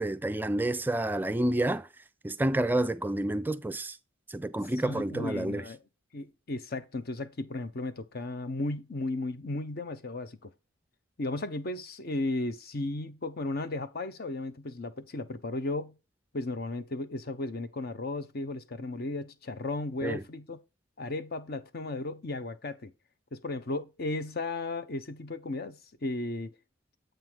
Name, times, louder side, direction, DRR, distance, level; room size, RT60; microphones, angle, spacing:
voice 1, 0.0-1.9 2.2-4.0 4.3-5.7 20.0-20.2, right 1 dB, 10° right, 0.4 m, -29 dB
voice 2, 4.8-5.8 6.1-10.5 11.2-16.0 16.3-20.6 21.0-22.9 23.3-26.5, left 2 dB, 50° left, 0.7 m, -35 dB
7.9 x 3.8 x 4.6 m
head